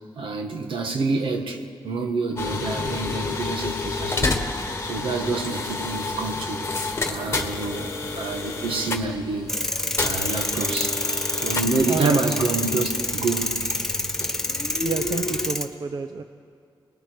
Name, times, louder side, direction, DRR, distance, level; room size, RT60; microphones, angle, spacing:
voice 1, 0.2-4.4 4.8-6.7 7.1-9.5 10.0-11.0 11.3-13.6, right 3 dB, 85° right, 4 dB, 1.9 m, -27 dB
sound 1, 2.4-15.5, left 3 dB, 30° left, 1.4 m, -30 dB
sound 2, 9.5-15.6, left 1 dB, 5° left, 1.0 m, -27 dB
voice 2, 11.9-12.2 14.8-16.2, right 5 dB, 55° right, 8 dB, 0.7 m, -30 dB
30.0 x 20.0 x 4.8 m, 2.3 s
wide cardioid pair, 155°, 9 cm